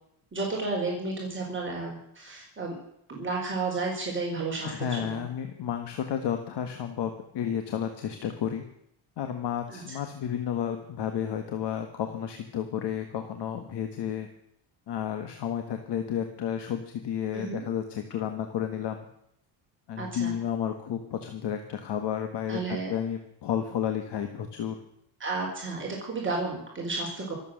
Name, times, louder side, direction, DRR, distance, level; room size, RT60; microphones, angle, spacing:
voice 1, 0.3-2.7 3.1-5.2 9.7-10.0 17.3-17.6 20.0-20.3 22.5-22.9 25.2-27.3, right 3 dB, 25° right, -2 dB, 4.4 m, -32 dB
voice 2, 4.6-8.6 9.2-14.3 14.9-19.1 19.9-24.8, left 9 dB, 55° left, 7 dB, 1.7 m, -32 dB
25.0 x 8.5 x 6.5 m, 0.74 s
cardioid pair, 120°, 49 cm